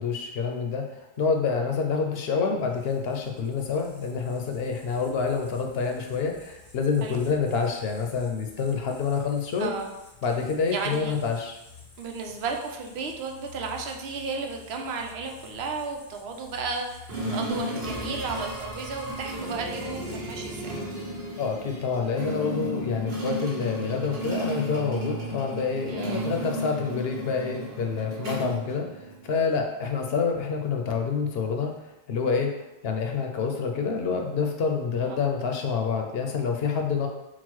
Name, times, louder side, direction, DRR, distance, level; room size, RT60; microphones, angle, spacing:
voice 1, 0.0-9.7 10.2-11.6 21.4-32.5 32.8-37.1, left 5 dB, 75° left, 3 dB, 0.8 m, -27 dB
sound 1, 2.6-20.9, left 3 dB, 20° left, 0.7 m, -51 dB
voice 2, 9.6-9.9 10.7-11.2 12.0-20.7 25.9-26.3 35.0-35.2, right 4 dB, 90° right, 2 dB, 0.9 m, -34 dB
sound 2, 17.1-29.4, equal, 65° right, 1.2 m, -33 dB
3.9 x 2.3 x 4.5 m, 0.94 s
omnidirectional pair, 1.0 m